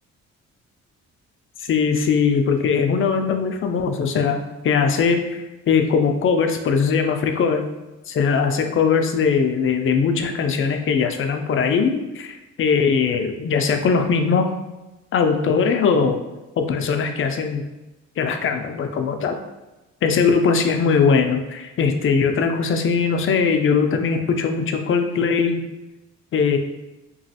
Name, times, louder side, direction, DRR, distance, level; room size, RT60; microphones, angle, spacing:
voice 1, 1.7-7.7 8.1-14.5 15.1-16.2 16.6-17.6 18.2-19.4 20.0-25.6 26.3-26.6, left 5 dB, 45° left, 6 dB, 0.4 m, -20 dB
3.0 x 2.3 x 2.7 m, 1.0 s
cardioid pair, 90°, 30 cm